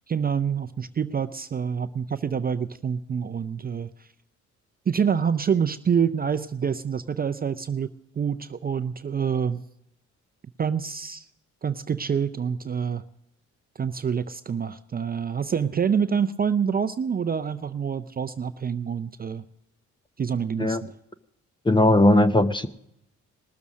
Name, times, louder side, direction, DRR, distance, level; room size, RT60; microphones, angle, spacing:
voice 1, 0.1-4.1 4.9-7.9 8.2-9.6 10.6-11.3 11.6-13.0 13.8-19.4 20.2-20.9, right 7 dB, 30° right, 11 dB, 0.5 m, -26 dB
voice 2, 21.7-22.7, left 1 dB, 15° left, 11 dB, 0.8 m, -18 dB
19.5 x 7.0 x 6.2 m, 0.80 s
cardioid pair, 90°, 30 cm